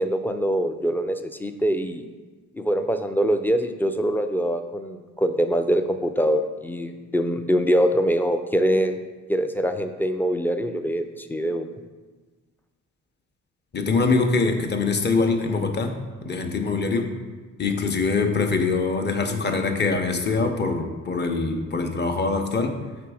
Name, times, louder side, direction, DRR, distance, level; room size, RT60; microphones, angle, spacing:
voice 1, 0.0-2.1 2.5-9.0 9.3-11.7, equal, 5° left, 7 dB, 0.3 m, -23 dB
voice 2, 13.7-15.9 16.2-17.1 17.6-22.8, left 4 dB, 35° left, 4 dB, 0.7 m, -23 dB
5.9 x 3.4 x 4.8 m, 1.3 s
cardioid pair, 90°, 30 cm